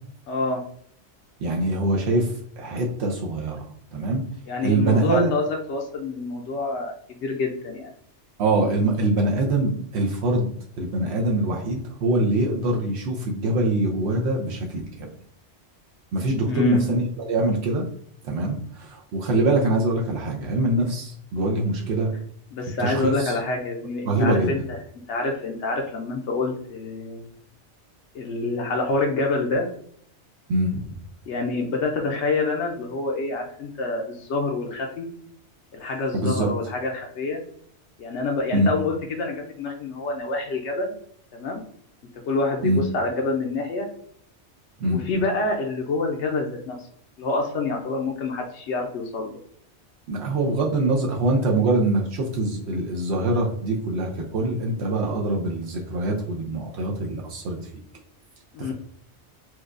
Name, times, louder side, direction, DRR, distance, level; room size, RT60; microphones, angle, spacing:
voice 1, 0.3-0.6 4.5-7.9 16.5-17.0 22.5-24.8 25.1-27.3 28.1-29.7 31.3-35.1 35.7-37.4 38.0-40.9 41.3-41.6 42.3-43.9 44.8-46.8 47.2-49.3 58.5-58.7, left 3 dB, 80° left, 1 dB, 0.9 m, -27 dB
voice 2, 1.4-4.3 4.6-5.3 8.4-10.5 10.8-15.1 16.1-17.9 18.2-22.1 22.8-23.4 24.1-24.5 30.5-30.8 36.1-36.5 38.5-38.7 42.6-42.8 44.8-45.0 50.1-57.6 58.6-58.7, right 2 dB, 70° right, 0 dB, 0.9 m, -24 dB
4.5 x 2.3 x 2.4 m, 0.64 s
omnidirectional pair, 1.2 m